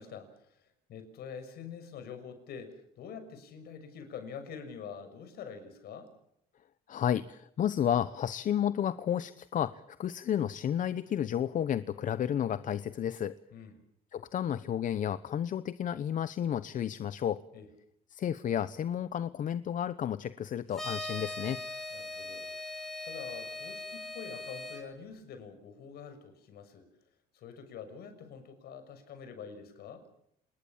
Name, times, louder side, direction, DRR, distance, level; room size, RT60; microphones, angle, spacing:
voice 1, 0.0-6.1 13.5-13.7 17.5-17.7 21.9-26.9 27.3-30.1, left 6 dB, 70° left, 9 dB, 6.4 m, -46 dB
voice 2, 6.9-13.4 14.1-17.4 18.1-21.6, left 9 dB, 50° left, 14 dB, 1.0 m, -32 dB
sound 1, 20.7-24.8, left 2 dB, ahead, 6.9 m, -40 dB
28.0 x 20.5 x 7.4 m, 0.72 s
cardioid pair, 110°, 17 cm